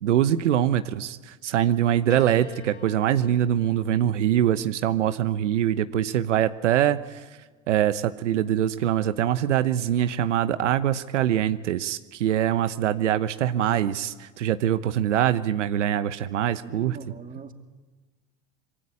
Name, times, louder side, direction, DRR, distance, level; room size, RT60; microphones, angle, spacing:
voice 1, 0.0-7.2 7.7-17.0, right 11 dB, 85° right, 12 dB, 1.0 m, -23 dB
Piano, 2.1-6.6 7.6-8.4, left 5 dB, 85° left, 6.0 m, -48 dB
voice 2, 16.6-17.5, right 5 dB, 25° right, 5 dB, 2.7 m, -42 dB
25.0 x 22.0 x 9.8 m, 1.3 s
hypercardioid pair, 90°, 35 cm